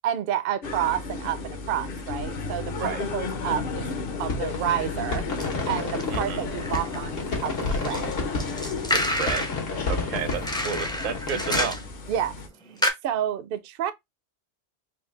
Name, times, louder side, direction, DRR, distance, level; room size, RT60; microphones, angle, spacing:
voice 1, 0.0-3.9 4.2-5.2 5.7-7.6 7.9-8.1 12.1-12.4 12.6-13.9, right 10 dB, 60° right, 0.6 m, -29 dB
sound 1, 0.6-12.5, left 4 dB, 50° left, 0.9 m, -34 dB
sound 2, 4.2-11.7, left 3 dB, 75° left, 1.6 m, -32 dB
sound 3, 5.4-5.5 6.0-7.4 7.7-9.6 10.3-12.0 12.4-12.5 12.8-12.9, left 1 dB, 5° left, 0.4 m, -29 dB
voice 2, 6.1-6.5 8.9-9.5 9.9-11.8, right 6 dB, 80° right, 1.1 m, -31 dB
4.5 x 2.3 x 3.2 m
omnidirectional pair, 1.3 m